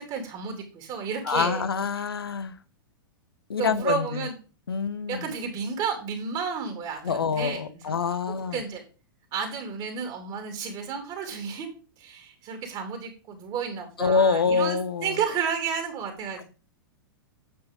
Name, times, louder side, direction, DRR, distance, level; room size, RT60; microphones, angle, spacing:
voice 1, 0.0-1.6 3.6-4.3 5.1-7.9 8.5-8.8 9.3-11.7 12.0-16.4, right 6 dB, 40° right, 4 dB, 2.6 m, -32 dB
voice 2, 1.2-2.6 3.5-4.3 4.7-5.3 7.0-8.6 14.0-15.2 16.4-16.5, left 5 dB, 80° left, 14 dB, 0.9 m, -26 dB
9.1 x 5.0 x 5.2 m, 0.36 s
hypercardioid pair, 105°, 12 cm